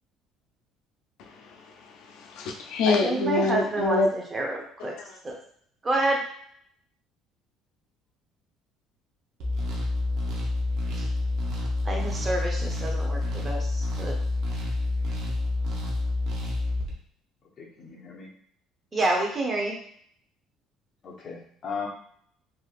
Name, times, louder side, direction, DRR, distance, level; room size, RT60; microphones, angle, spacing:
voice 1, 1.2-4.1 4.8-5.2, left 3 dB, 70° left, 0.4 m, -27 dB
voice 2, 2.9-4.0 4.3-4.9 5.2-5.3 5.8-6.2 11.8-14.1 18.9-19.7, right 2 dB, 25° right, 0.8 m, -28 dB
sound 1, 9.4-16.9, left 2 dB, 70° right, 0.8 m, -28 dB
voice 3, 17.6-18.3 19.1-19.3 21.0-21.9, left 5 dB, 40° left, 0.9 m, -37 dB
3.3 x 2.6 x 2.4 m
cardioid pair, 125°, 0 cm